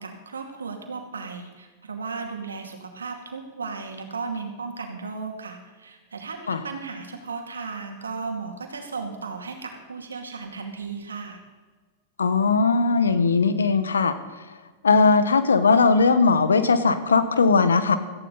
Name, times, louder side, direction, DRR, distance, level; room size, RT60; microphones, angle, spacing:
voice 1, 0.0-11.4, right 4 dB, 90° right, 3 dB, 2.5 m, -35 dB
voice 2, 12.2-14.1 14.8-18.0, left 4 dB, 85° left, 11 dB, 1.3 m, -19 dB
18.0 x 14.5 x 4.2 m, 1.4 s
hypercardioid pair, 100°, 0 cm